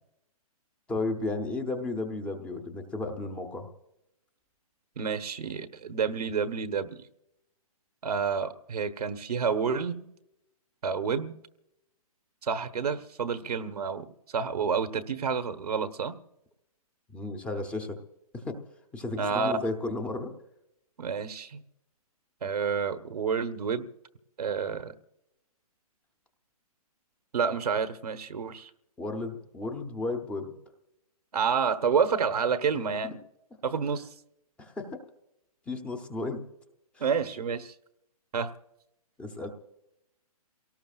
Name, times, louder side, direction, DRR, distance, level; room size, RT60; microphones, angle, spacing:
voice 1, 0.9-3.7 17.1-18.0 18.3-18.6 18.9-20.3 29.0-30.5 34.6-35.0 35.7-36.4 37.0-37.1 39.2-39.5, left 2 dB, 5° left, 6 dB, 0.8 m, -33 dB
voice 2, 5.0-7.0 8.0-10.1 10.8-11.3 12.4-14.0 14.3-16.2 19.2-19.5 21.0-21.6 22.4-23.9 24.4-24.9 27.3-28.7 31.3-33.1 33.6-34.1 37.0-37.7 38.3-38.5, right 6 dB, 85° right, 9 dB, 1.3 m, -29 dB
29.0 x 18.0 x 2.4 m, 0.86 s
hypercardioid pair, 165°, 19 cm